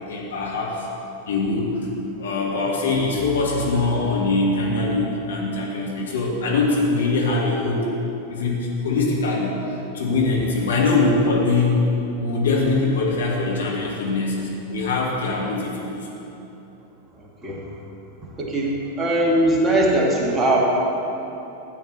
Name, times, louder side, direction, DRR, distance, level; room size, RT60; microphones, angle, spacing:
voice 1, 0.1-0.8 1.3-1.8 2.2-7.9 8.3-9.6 9.9-11.8 12.2-16.1, left 3 dB, 65° left, -3 dB, 2.1 m, -22 dB
voice 2, 18.4-18.7 19.0-20.6, right 1 dB, 15° right, -3 dB, 1.9 m, -20 dB
13.5 x 9.0 x 4.2 m, 3.0 s
figure-of-eight pair, 90°, 0 cm